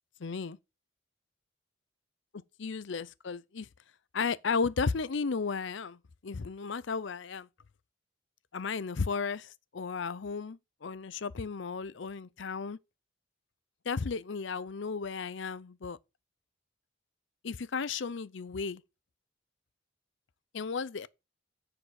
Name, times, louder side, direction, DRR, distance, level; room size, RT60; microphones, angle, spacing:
voice 1, 0.2-0.6 2.6-3.7 4.1-7.5 8.5-12.8 13.9-16.0 17.4-18.8 20.5-21.1, left 5 dB, 65° left, 0.6 m, -34 dB
9.8 x 5.0 x 6.4 m
head